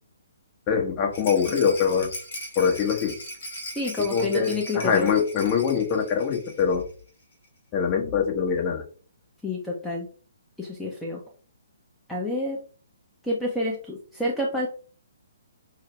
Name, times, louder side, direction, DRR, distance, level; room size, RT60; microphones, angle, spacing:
voice 1, 0.7-2.1 2.5-3.1 4.1-6.8 7.7-8.8, left 6 dB, 30° left, 0 dB, 1.3 m, -23 dB
Rattle, 1.1-6.8 7.1-7.2 7.4-7.5, equal, 55° left, 2.1 m, -39 dB
voice 2, 3.8-5.1 9.4-10.1 10.6-11.2 12.1-12.6 13.2-14.7, left 2 dB, 5° left, -3 dB, 0.8 m, -28 dB
6.4 x 2.2 x 3.2 m, 0.42 s
figure-of-eight pair, 135°, 0 cm